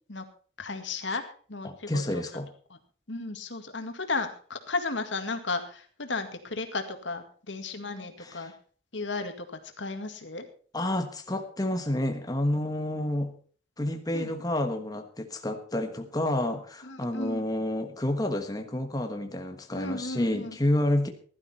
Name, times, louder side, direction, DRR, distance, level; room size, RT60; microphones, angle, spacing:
voice 1, 0.6-1.2 1.5-2.2 3.1-8.5 8.9-9.5 9.8-10.4 14.1-14.3 16.8-17.4 19.8-20.6, left 3 dB, 80° left, 7 dB, 2.0 m, -34 dB
voice 2, 1.6-2.5 8.2-8.5 10.7-13.3 13.8-21.1, left 1 dB, 20° left, 5 dB, 1.3 m, -29 dB
15.5 x 12.0 x 4.3 m, 0.43 s
head